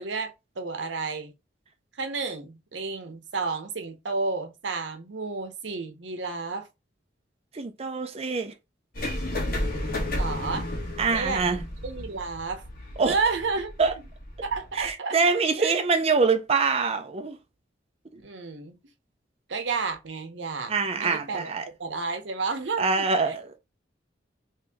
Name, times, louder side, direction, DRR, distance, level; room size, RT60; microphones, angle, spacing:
voice 1, 0.0-1.3 2.0-6.7 10.1-10.7 11.1-12.6 13.0-13.7 14.4-15.8 18.1-18.8 19.5-21.5 21.8-23.1, right 4 dB, 80° right, 0.8 m, -31 dB
voice 2, 7.5-8.5 11.0-11.6 13.0-13.2 13.8-13.9 14.7-17.4 20.7-21.7 22.8-23.6, right 4 dB, 35° right, 0.5 m, -24 dB
sound 1, 8.9-14.9, left 1 dB, 50° left, 1.4 m, -33 dB
3.1 x 2.8 x 3.4 m
head